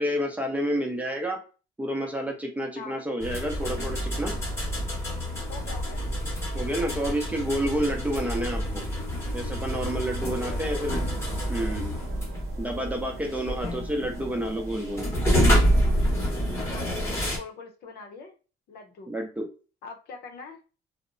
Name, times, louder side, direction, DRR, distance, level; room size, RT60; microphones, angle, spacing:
voice 1, 0.0-1.4 1.8-4.3 6.5-8.8 9.3-11.0 11.5-11.9 12.6-15.1 19.1-19.5, equal, 10° right, 2 dB, 0.6 m, -29 dB
sound 1, 3.2-17.4, equal, 15° left, 0.9 m, -28 dB
voice 2, 5.5-6.1 10.2-11.0 13.5-13.9 16.7-18.3 18.7-19.1 19.8-20.6, left 4 dB, 70° left, 3 dB, 0.7 m, -43 dB
sound 2, 10.9-17.3, right 7 dB, 75° right, 0.4 m, -45 dB
2.8 x 2.1 x 2.5 m, 0.34 s
cardioid pair, 110°, 17 cm